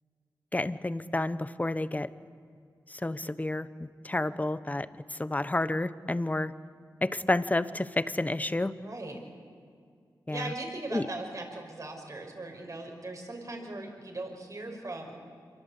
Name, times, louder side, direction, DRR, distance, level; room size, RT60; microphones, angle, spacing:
voice 1, 0.5-2.1 2.9-3.7 4.0-6.5 7.0-8.7 10.3-10.5 10.9-11.1, left 2 dB, 20° left, 14 dB, 1.0 m, -30 dB
voice 2, 8.8-9.2 10.3-15.2, right 2 dB, 45° right, 2 dB, 5.7 m, -39 dB
27.0 x 23.0 x 8.3 m, 2.2 s
cardioid pair, 70°, 8 cm